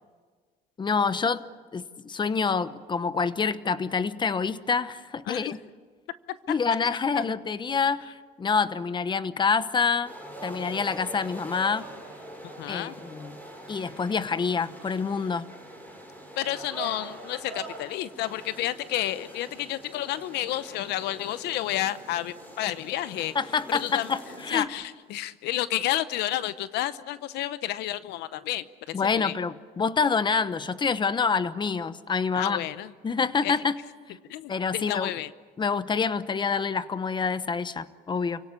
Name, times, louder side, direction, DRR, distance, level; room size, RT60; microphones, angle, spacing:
voice 1, 0.8-1.4 1.7-5.6 6.5-10.1 10.4-11.8 12.7-13.4 13.7-15.5 23.3-24.2 24.5-24.7 28.9-32.6 33.0-33.8 34.5-35.1 35.6-38.4, left 5 dB, 25° left, 13 dB, 1.0 m, -27 dB
sound 1, 10.0-24.7, right 1 dB, 10° left, 7.3 m, -43 dB
voice 2, 12.4-12.9 16.4-23.3 23.7-24.1 24.5-29.4 32.3-32.9 33.4-33.5 34.2-35.3, left 14 dB, 85° left, 15 dB, 0.8 m, -31 dB
29.0 x 17.5 x 9.8 m, 1.5 s
cardioid pair, 110°, 17 cm